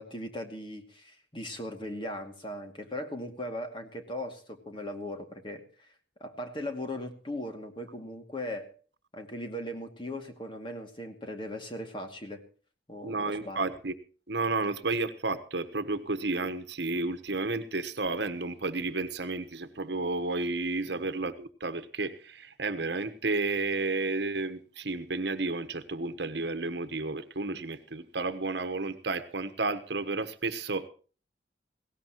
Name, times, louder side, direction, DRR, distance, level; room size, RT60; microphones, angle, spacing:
voice 1, 0.0-5.9 6.2-8.7 9.1-12.4 12.9-13.6 20.9-21.0, left 1 dB, 25° left, 4 dB, 2.3 m, -38 dB
voice 2, 13.0-13.9 14.3-30.9, right 3 dB, 65° right, 11 dB, 1.2 m, -32 dB
19.5 x 17.5 x 3.0 m, 0.39 s
head